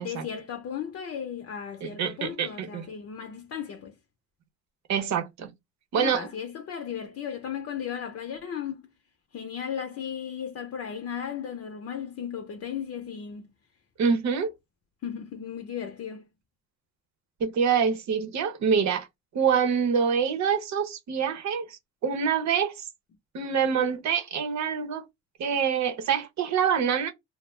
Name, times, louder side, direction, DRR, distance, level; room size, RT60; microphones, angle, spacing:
voice 1, 0.0-3.9 6.0-8.8 9.3-13.5 15.0-16.2, left 8 dB, 55° left, 0.6 m, -35 dB
voice 2, 1.8-2.9 4.9-5.5 5.9-6.3 14.0-14.5 17.4-19.1 19.3-22.9 23.3-25.0 25.4-27.1, right 7 dB, 65° right, 0.8 m, -26 dB
2.4 x 2.0 x 3.0 m
cardioid pair, 90°, 30 cm